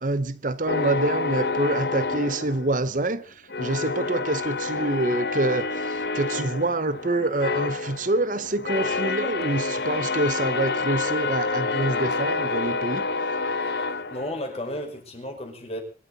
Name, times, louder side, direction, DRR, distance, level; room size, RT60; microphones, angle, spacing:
voice 1, 0.0-13.1, right 2 dB, 50° right, 0.9 m, -26 dB
sound 1, 0.7-3.1 3.5-14.7, left 3 dB, 65° left, 1.3 m, -28 dB
voice 2, 14.1-15.8, left 1 dB, 35° left, 5.3 m, -33 dB
25.5 x 13.0 x 4.1 m
head